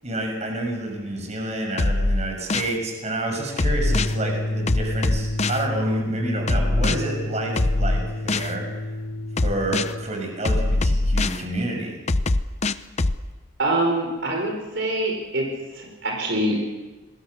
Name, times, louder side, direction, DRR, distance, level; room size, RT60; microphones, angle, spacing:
voice 1, 0.0-8.8 9.4-12.0, right 1 dB, 35° right, 2 dB, 6.4 m, -29 dB
sound 1, 1.8-2.7 3.6-4.1 4.7-5.6 6.5-7.0 7.6-8.5 9.4-9.9 10.4-11.4 12.1-13.2, left 2 dB, 35° left, 0.7 m, -22 dB
sound 2, 3.9-10.1, left 1 dB, 75° left, 2.2 m, -30 dB
voice 2, 13.6-15.5 15.7-16.6, right 1 dB, 65° right, 1 dB, 4.6 m, -24 dB
27.5 x 21.5 x 7.1 m, 1.2 s
head